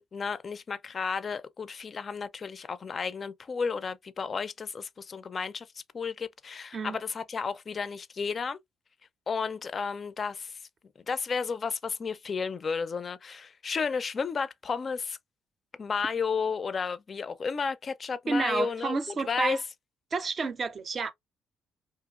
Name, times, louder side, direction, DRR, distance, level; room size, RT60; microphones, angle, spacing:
voice 1, 0.0-5.7 5.9-8.6 9.3-10.6 11.1-15.2 15.8-19.0 19.3-19.6, left 5 dB, 40° left, 0.4 m, -32 dB
voice 2, 18.3-19.6 20.1-21.1, right 4 dB, 45° right, 0.5 m, -30 dB
2.9 x 2.5 x 2.3 m
cardioid pair, 90°, 0 cm